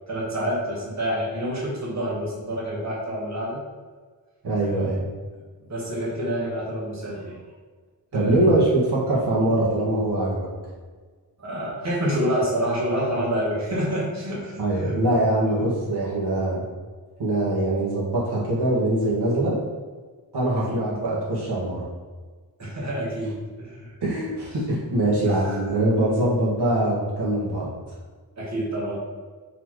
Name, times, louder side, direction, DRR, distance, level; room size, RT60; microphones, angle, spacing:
voice 1, 0.1-3.6 4.6-5.0 5.3-5.4 5.7-7.4 8.1-8.6 11.4-15.0 15.5-15.7 20.7-20.8 22.6-23.9 25.2-25.6 28.4-29.0, equal, 40° right, -5 dB, 2.0 m, -28 dB
voice 2, 4.4-5.0 8.1-10.5 14.6-16.6 17.2-19.5 20.3-21.8 24.0-27.7, right 1 dB, 70° right, -6 dB, 2.0 m, -23 dB
5.7 x 4.4 x 4.8 m, 1.5 s
wide cardioid pair, 100°, 40 cm